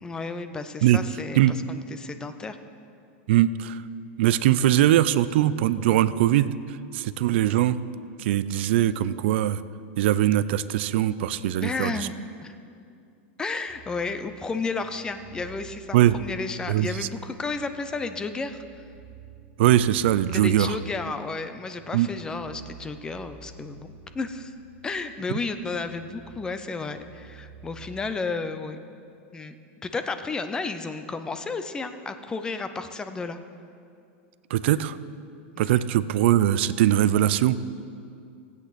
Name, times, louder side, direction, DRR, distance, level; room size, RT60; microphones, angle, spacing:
voice 1, 0.0-2.6 11.6-12.2 12.4-12.6 13.4-18.6 20.3-24.5 24.8-28.8 29.3-29.5 29.8-33.4 35.5-35.8, left 4 dB, 10° left, 9 dB, 0.5 m, -32 dB
voice 2, 3.3-3.8 4.2-6.5 6.9-7.8 8.2-9.6 10.0-11.9 15.9-16.2 16.7-17.1 19.6-20.7 21.9-22.1 34.5-35.0 35.6-37.6, right 12 dB, 65° right, 15 dB, 0.4 m, -21 dB
sound 1, 13.7-28.0, right 5 dB, 40° right, 2.7 m, -49 dB
16.5 x 8.2 x 4.1 m, 2.4 s
supercardioid pair, 155°, 7 cm